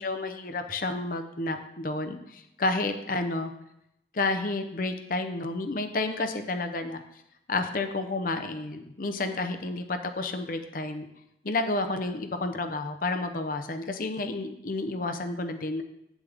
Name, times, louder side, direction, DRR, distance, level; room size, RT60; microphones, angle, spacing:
voice 1, 0.0-3.5 4.1-7.0 7.5-11.1 11.4-15.8, left 2 dB, 50° left, 7 dB, 0.7 m, -30 dB
8.7 x 7.2 x 3.5 m, 0.81 s
head